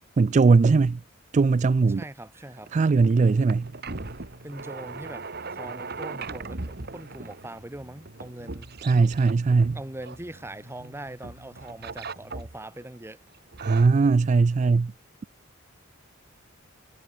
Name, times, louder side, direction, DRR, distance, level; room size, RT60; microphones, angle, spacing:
voice 1, 0.2-1.0 1.3-2.0 2.7-3.7 8.8-9.8 13.6-14.9, right 4 dB, 35° right, 0.3 m, -20 dB
voice 2, 2.0-2.7 4.4-8.7 9.7-13.2, right 1 dB, 15° right, 1.3 m, -41 dB
sound 1, 2.5-10.9 11.2-12.8 13.3-13.9, right 3 dB, 55° right, 1.8 m, -39 dB
Bass guitar, 2.9-12.5, right 1 dB, 85° right, 2.0 m, -52 dB
head